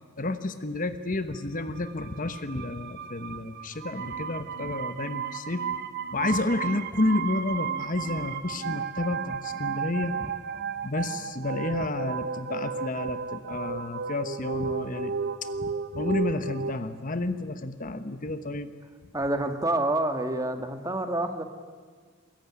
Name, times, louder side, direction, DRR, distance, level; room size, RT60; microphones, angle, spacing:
voice 1, 0.2-5.7 6.1-10.3 10.8-15.1 15.4-18.7, left 2 dB, 40° left, 11 dB, 1.1 m, -31 dB
sound 1, 1.6-16.7, right 6 dB, 50° right, 0.9 m, -34 dB
voice 2, 19.1-21.4, right 1 dB, 15° right, 7 dB, 1.7 m, -27 dB
24.5 x 21.5 x 9.8 m, 1.5 s
head